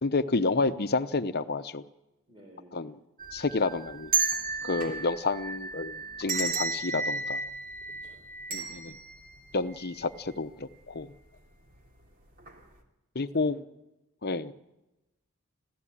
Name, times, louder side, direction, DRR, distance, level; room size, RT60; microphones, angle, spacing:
voice 1, 0.0-1.8 2.7-3.0 3.3-4.1 4.6-7.4 8.5-9.0 9.5-11.1 13.1-13.6 14.2-14.5, left 3 dB, 45° left, 11 dB, 0.9 m, -30 dB
voice 2, 2.3-2.9 7.8-8.2 13.3-13.6, equal, 20° right, 1 dB, 4.3 m, -53 dB
sound 1, 3.2-10.4 10.7-10.8 11.7-12.0 12.4-12.6, right 4 dB, 40° right, 2.9 m, -34 dB
26.0 x 16.0 x 8.7 m, 1.0 s
head